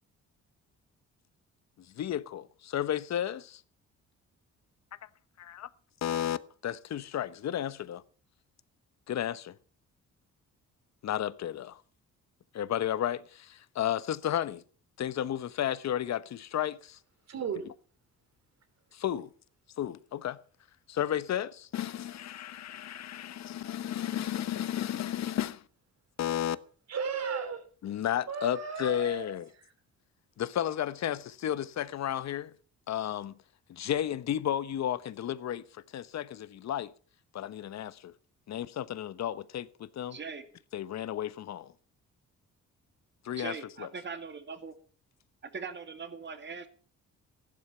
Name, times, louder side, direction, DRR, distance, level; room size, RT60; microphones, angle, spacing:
voice 1, 2.0-3.6 5.4-5.7 6.0-6.4 6.6-8.0 9.1-9.6 11.0-11.8 12.5-14.6 15.0-17.0 18.9-19.3 19.8-20.4 20.9-25.6 26.2-26.6 27.8-29.4 30.4-32.5 32.9-33.4 33.7-35.6 35.9-36.9 37.3-38.1 38.5-40.2 40.7-41.7 43.2-43.9, left 11 dB, 60° left, 1.1 m, -33 dB
voice 2, 17.3-17.7 26.9-27.6 28.3-29.3, right 5 dB, 60° right, 3.4 m, -34 dB
voice 3, 40.1-40.4 43.4-44.8 45.4-46.7, right 5 dB, 35° right, 2.5 m, -40 dB
15.0 x 12.0 x 5.8 m
cardioid pair, 90°, 30 cm